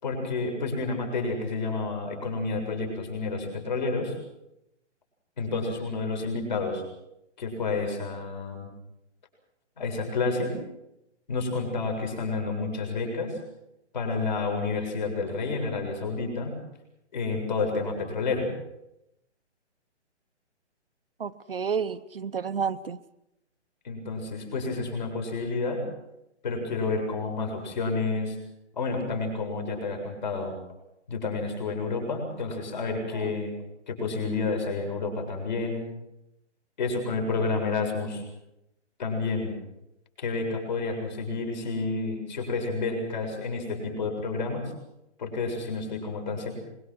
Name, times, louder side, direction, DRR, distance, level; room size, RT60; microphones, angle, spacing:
voice 1, 0.0-4.2 5.4-6.8 7.4-8.7 9.8-10.5 11.3-13.4 13.9-16.6 17.1-18.5 23.8-25.8 26.4-28.4 28.7-30.5 31.1-33.5 33.9-35.8 36.8-38.2 39.0-39.5 40.2-44.6 45.2-46.5, left 3 dB, 40° left, 3 dB, 7.3 m, -30 dB
voice 2, 21.2-23.0 33.1-33.3, right 6 dB, 50° right, 9 dB, 0.9 m, -30 dB
25.0 x 22.5 x 6.3 m, 0.85 s
hypercardioid pair, 175°, 36 cm